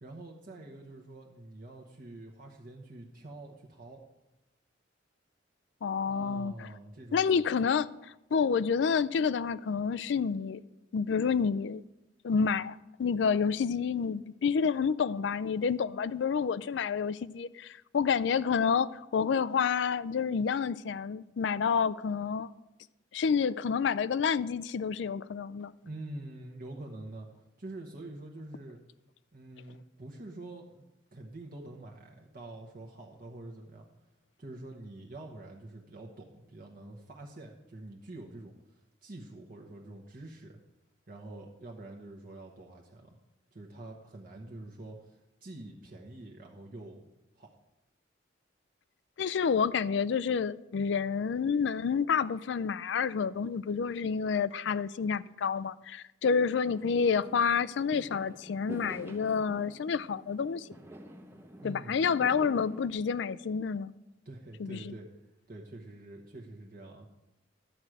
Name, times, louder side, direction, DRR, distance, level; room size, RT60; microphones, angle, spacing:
voice 1, 0.0-4.0 6.1-7.6 25.8-27.3 27.6-28.8 29.3-33.9 34.4-40.6 41.1-43.2 43.5-47.1 47.3-47.6 61.6-62.1 64.2-65.1 65.5-67.1, right 2 dB, 50° right, 1.0 m, -46 dB
voice 2, 5.8-6.7 7.1-10.6 10.9-11.8 12.2-22.5 23.1-25.7 49.2-60.7 61.6-63.9 64.6-64.9, left 6 dB, 70° left, 0.4 m, -29 dB
Fireworks, 56.6-62.9, equal, 15° right, 0.7 m, -47 dB
11.5 x 4.8 x 7.8 m
head